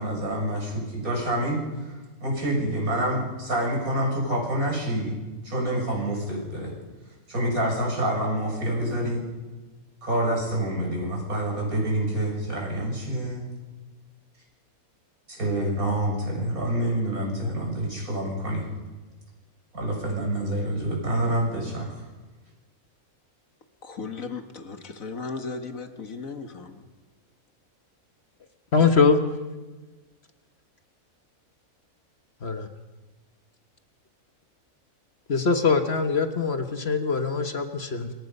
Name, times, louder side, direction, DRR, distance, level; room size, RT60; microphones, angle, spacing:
voice 1, 0.0-5.2 5.4-6.7 7.3-9.2 10.0-13.5 15.3-18.7 19.7-22.0, right 1 dB, 75° right, 0 dB, 7.2 m, -27 dB
voice 2, 23.8-26.9, left 4 dB, 65° left, 7 dB, 1.9 m, -36 dB
voice 3, 28.7-29.2 32.4-32.7 35.3-38.1, left 5 dB, 45° left, 7 dB, 1.5 m, -22 dB
27.5 x 23.0 x 5.5 m, 1.2 s
omnidirectional pair, 1.5 m